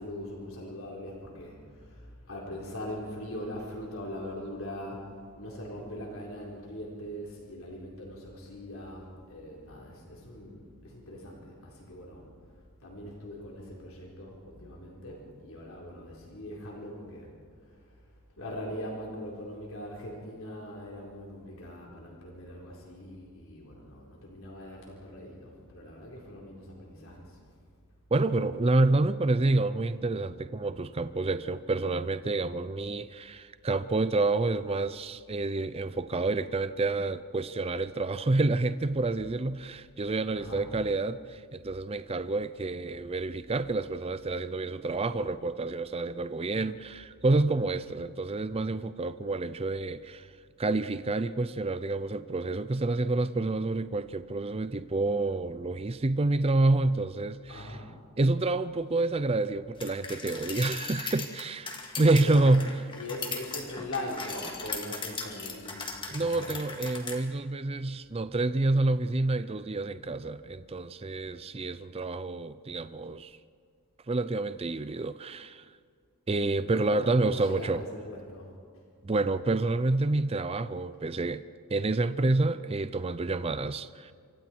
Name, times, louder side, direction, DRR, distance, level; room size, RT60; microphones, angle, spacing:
voice 1, 0.0-17.3 17.6-27.5 40.3-40.7 57.5-58.0 62.0-62.5 63.0-66.6 76.8-78.6, left 1 dB, 65° left, 4.3 m, -41 dB
voice 2, 28.1-50.3 50.6-57.8 58.2-62.7 66.1-73.4 74.1-75.7 76.3-77.8 79.0-81.4 81.7-84.1, right 2 dB, 25° right, 0.5 m, -28 dB
sound 1, 59.8-67.2, left 4 dB, 20° left, 2.3 m, -38 dB
27.5 x 24.5 x 4.6 m
head